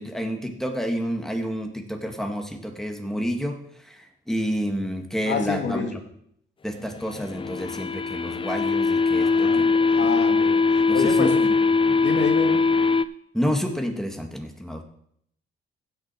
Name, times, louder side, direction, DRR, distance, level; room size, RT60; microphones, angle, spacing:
voice 1, 0.0-6.0 6.6-10.1 10.9-11.5 11.9-12.0 13.3-14.8, equal, ahead, 3 dB, 1.9 m, -29 dB
voice 2, 5.3-6.0 9.2-11.5 12.0-12.7, left 5 dB, 65° left, 3 dB, 2.2 m, -29 dB
sound 1, 7.0-13.0, left 4 dB, 25° left, 0.5 m, -21 dB
16.0 x 6.3 x 4.4 m, 0.70 s
cardioid pair, 90°, 20 cm